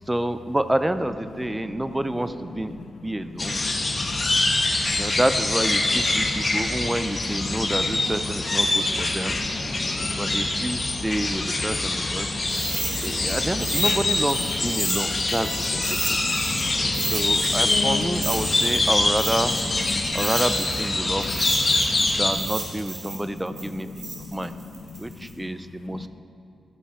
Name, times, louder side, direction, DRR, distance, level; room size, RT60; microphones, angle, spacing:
voice 1, 0.1-2.7 3.0-3.6 4.9-9.4 10.2-12.3 13.0-16.2 17.1-19.6 20.1-21.5 22.2-23.9 24.2-24.5 25.0-26.1, right 1 dB, 10° right, 11 dB, 0.4 m, -28 dB
voice 2, 2.5-4.6 6.2-6.9 7.4-7.7 8.7-10.2 11.1-11.6 12.0-13.2 14.8-15.2 16.0-17.2 17.7-18.0 18.9-19.0 20.1-20.3 21.1-21.4 21.7-22.4 23.1-25.5 25.9-26.1, left 5 dB, 75° left, 8 dB, 0.5 m, -39 dB
sound 1, 3.4-22.3, left 2 dB, 35° left, 1.0 m, -24 dB
sound 2, 12.5-16.7 16.9-20.9 21.2-25.3, right 3 dB, 65° right, 2.1 m, -33 dB
13.0 x 5.6 x 4.8 m, 2.7 s
cardioid pair, 90°, 0 cm